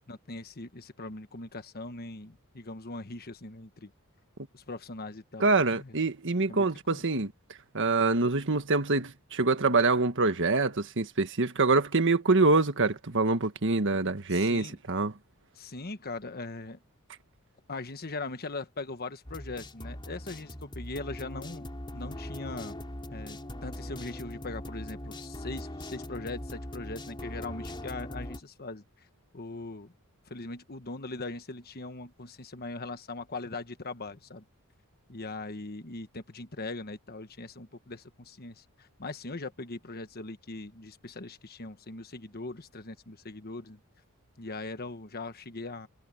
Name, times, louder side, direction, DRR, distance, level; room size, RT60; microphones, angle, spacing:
voice 1, 0.1-3.9 4.5-5.9 6.5-7.0 14.3-14.8 15.5-16.8 17.7-21.7 21.9-22.8 23.1-28.8 29.3-29.9 30.3-34.4 35.1-43.8 44.4-45.9, left 3 dB, 45° left, 1.4 m, -40 dB
voice 2, 5.4-7.3 7.7-15.1, right 3 dB, 55° right, 1.6 m, -25 dB
sound 1, 19.2-28.4, left 1 dB, 20° left, 4.6 m, -40 dB
head